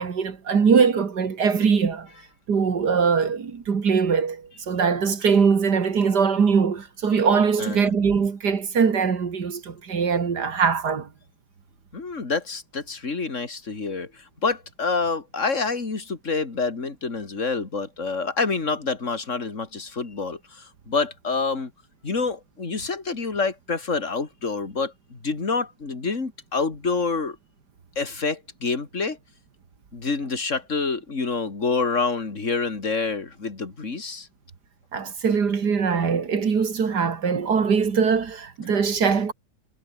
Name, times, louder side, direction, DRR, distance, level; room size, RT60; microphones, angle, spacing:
voice 1, 0.0-2.1 2.5-11.1 34.9-39.3, right 6 dB, 60° right, 2.6 m, -22 dB
voice 2, 7.6-7.9 11.9-21.7 22.0-27.4 27.9-29.2 29.9-34.3, left 4 dB, 40° left, 3.3 m, -27 dB
omnidirectional pair, 2.0 m